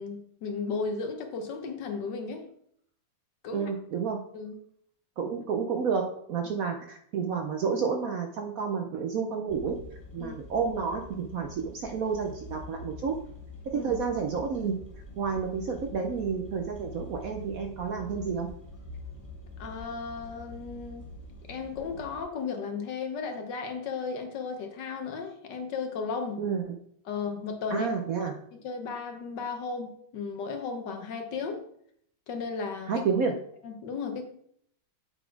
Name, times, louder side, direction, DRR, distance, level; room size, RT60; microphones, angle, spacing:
voice 1, 0.0-2.5 3.4-3.7 4.3-4.6 10.2-10.4 13.7-13.9 19.6-21.1 21.5-26.4 27.0-27.9 28.2-31.6 32.3-33.1 33.6-34.2, left 5 dB, 70° left, 5 dB, 1.6 m, -35 dB
voice 2, 3.5-4.2 5.2-9.8 10.1-13.2 13.7-14.8 15.2-18.5 26.4-26.8 27.7-28.4 32.9-33.4, right 5 dB, 65° right, 4 dB, 0.9 m, -30 dB
sound 1, 9.5-22.2, left 1 dB, 20° left, 1.6 m, -45 dB
7.7 x 4.0 x 4.6 m, 0.66 s
omnidirectional pair, 2.1 m